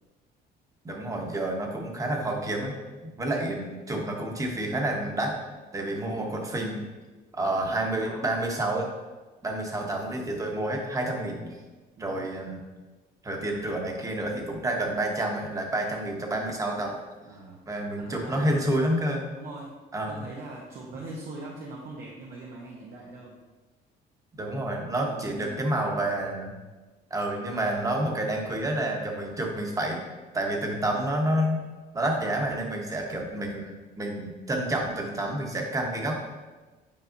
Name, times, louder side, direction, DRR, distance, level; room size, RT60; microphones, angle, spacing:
voice 1, 0.8-2.7 3.2-5.3 5.7-6.8 7.3-8.9 9.4-11.6 12.0-12.6 13.2-17.0 17.7-19.2 19.9-20.2 24.3-26.6 27.1-30.0 30.3-31.6 31.9-36.1, right 1 dB, 20° right, 1 dB, 1.1 m, -29 dB
voice 2, 7.5-8.3 12.0-12.3 15.9-16.1 17.2-17.6 18.0-18.8 19.4-19.7 20.1-23.4 25.0-26.0, right 2 dB, 65° right, -3 dB, 1.0 m, -42 dB
8.7 x 4.7 x 2.6 m, 1.3 s
cardioid pair, 110°, 17 cm